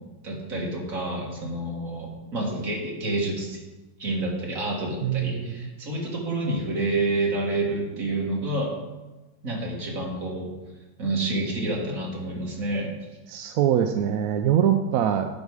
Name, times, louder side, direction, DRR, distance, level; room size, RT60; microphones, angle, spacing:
voice 1, 0.2-3.6 4.0-8.7 9.4-10.5 11.0-12.9, right 2 dB, 55° right, -3 dB, 2.4 m, -28 dB
voice 2, 5.0-5.7 13.3-15.3, right 9 dB, 70° right, 6 dB, 0.9 m, -23 dB
10.5 x 5.3 x 4.8 m, 1.1 s
omnidirectional pair, 1.8 m